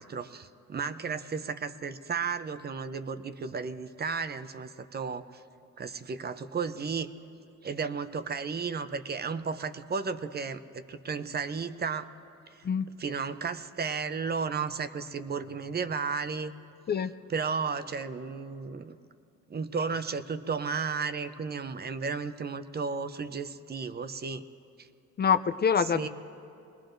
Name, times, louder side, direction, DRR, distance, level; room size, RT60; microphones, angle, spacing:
voice 1, 0.0-5.4 5.8-7.1 7.6-12.1 13.0-16.5 17.3-19.0 19.5-24.4 24.8-24.9 25.8-26.1, right 5 dB, 35° right, 11 dB, 0.6 m, -33 dB
voice 2, 25.2-26.1, left 7 dB, 35° left, 10 dB, 0.4 m, -25 dB
23.0 x 20.0 x 2.6 m, 2.6 s
cardioid pair, 90°, 30 cm